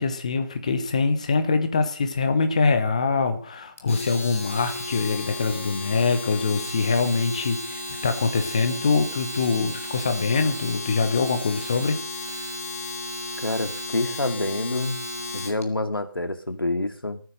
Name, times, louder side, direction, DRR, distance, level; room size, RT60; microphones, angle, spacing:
voice 1, 0.0-12.0, left 4 dB, 20° left, 9 dB, 1.1 m, -24 dB
Domestic sounds home sounds, 3.8-15.6, left 2 dB, 40° left, 2.6 m, -34 dB
voice 2, 13.4-15.0 15.3-17.2, left 2 dB, 70° left, 8 dB, 2.5 m, -27 dB
17.5 x 9.5 x 6.6 m, 0.42 s
figure-of-eight pair, 165°, 12 cm